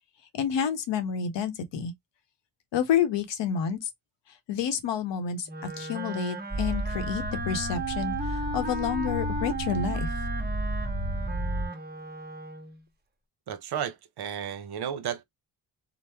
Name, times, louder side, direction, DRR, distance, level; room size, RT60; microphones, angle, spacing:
voice 1, 0.3-1.9 2.7-3.9 4.5-5.5 5.8-10.1, left 8 dB, 85° left, 0.9 m, -29 dB
Wind instrument woodwind instrument, 5.5-12.8, right 2 dB, 25° right, 0.9 m, -35 dB
sound 1, 6.5-11.7, right 1 dB, 15° left, 1.1 m, -32 dB
voice 2, 13.5-15.2, right 8 dB, 65° right, 0.7 m, -33 dB
2.9 x 2.0 x 3.3 m
cardioid pair, 100°, 42 cm